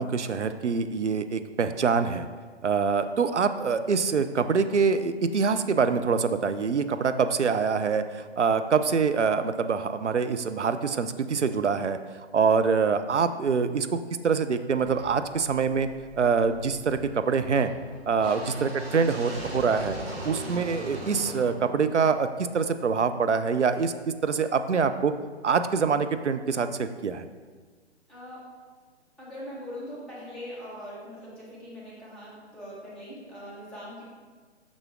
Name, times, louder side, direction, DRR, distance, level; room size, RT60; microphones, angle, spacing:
voice 1, 0.0-2.3 2.6-12.0 12.3-14.0 14.2-15.9 16.2-17.7 18.1-25.1 25.4-27.3, right 5 dB, 80° right, 10 dB, 0.6 m, -25 dB
sound 1, 14.8-22.9, right 1 dB, 60° right, 2.2 m, -40 dB
voice 2, 28.1-28.4 29.2-34.1, equal, ahead, -10 dB, 1.3 m, -41 dB
6.3 x 6.1 x 3.7 m, 1.5 s
figure-of-eight pair, 135°, 35 cm